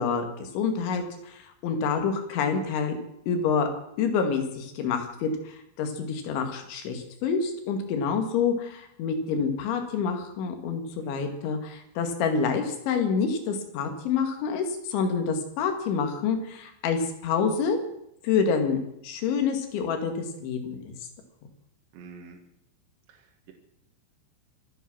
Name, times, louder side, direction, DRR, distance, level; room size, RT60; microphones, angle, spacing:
voice 1, 0.0-3.0 3.3-3.7 4.0-17.8 18.2-20.9, left 5 dB, 70° left, 6 dB, 4.2 m, -27 dB
voice 2, 11.0-11.4 21.9-22.4 23.1-23.5, right 5 dB, 65° right, 1 dB, 3.7 m, -48 dB
26.0 x 8.9 x 6.1 m, 0.78 s
omnidirectional pair, 5.6 m